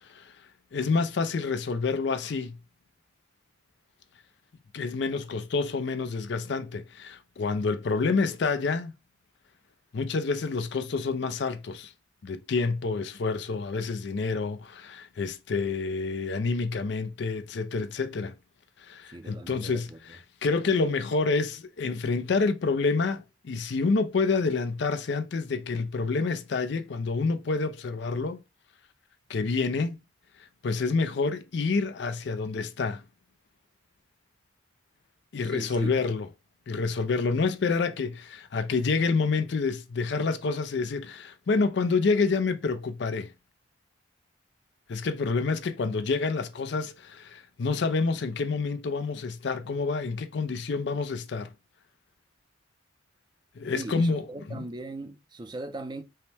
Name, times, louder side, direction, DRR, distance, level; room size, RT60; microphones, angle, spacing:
voice 1, 0.7-2.6 4.7-8.9 9.9-11.9 12.2-18.3 18.8-28.4 29.3-30.0 30.6-33.0 35.3-36.3 36.7-43.3 44.9-51.5 53.6-54.6, left 4 dB, 60° left, 0.4 m, -28 dB
voice 2, 19.1-20.0 35.4-35.9 53.7-56.0, right 2 dB, 20° right, 0.4 m, -39 dB
5.5 x 2.1 x 3.4 m
head